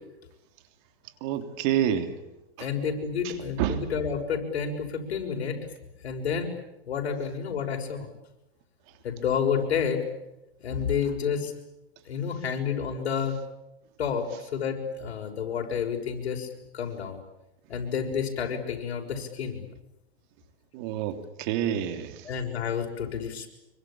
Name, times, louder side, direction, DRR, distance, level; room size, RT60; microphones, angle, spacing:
voice 1, 1.2-2.1 3.6-3.8 20.7-22.1, right 10 dB, 50° right, 8 dB, 3.3 m, -27 dB
voice 2, 2.6-5.6 6.0-6.5 6.9-8.1 9.0-10.0 10.6-11.5 12.1-13.4 14.0-16.5 16.7-17.2 17.7-19.6 22.2-23.5, left 7 dB, 80° left, 3 dB, 6.3 m, -30 dB
26.0 x 24.0 x 8.8 m, 0.92 s
hypercardioid pair, 130°, 31 cm